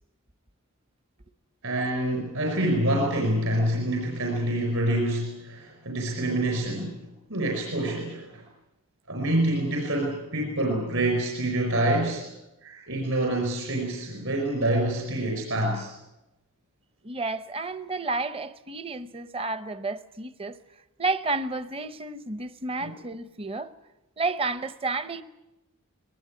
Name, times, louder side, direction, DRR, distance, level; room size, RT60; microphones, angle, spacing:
voice 1, 1.6-7.0 7.3-8.4 9.1-12.3 12.6-15.9 22.8-22.9, right 1 dB, 65° right, 5.0 m, -26 dB
voice 2, 17.0-20.6 21.0-23.7 24.2-25.2, right 3 dB, 25° right, 0.7 m, -31 dB
22.0 x 19.5 x 9.6 m
head